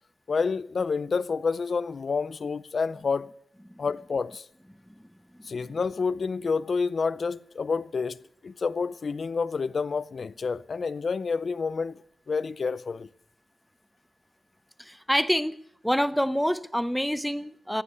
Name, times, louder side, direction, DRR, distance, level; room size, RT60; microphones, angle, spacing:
voice 1, 0.3-3.3 3.8-4.5 5.4-8.2 8.4-13.1, left 5 dB, 45° left, 0.5 m, -29 dB
voice 2, 14.8-15.6 15.8-17.8, equal, ahead, 0.6 m, -27 dB
15.0 x 10.0 x 8.0 m
wide cardioid pair, 110°, 0 cm